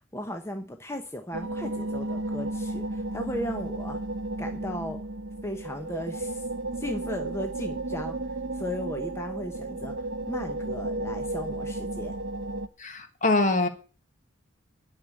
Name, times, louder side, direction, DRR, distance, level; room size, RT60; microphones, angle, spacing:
voice 1, 0.1-4.0 4.4-5.0 5.4-6.5 6.8-8.2 8.5-10.0 10.3-12.1, equal, 15° left, 0.8 m, -36 dB
sound 1, 1.3-12.7, right 2 dB, 60° right, 0.8 m, -33 dB
voice 2, 12.8-13.7, left 2 dB, 40° left, 1.4 m, -24 dB
10.5 x 6.3 x 8.2 m
head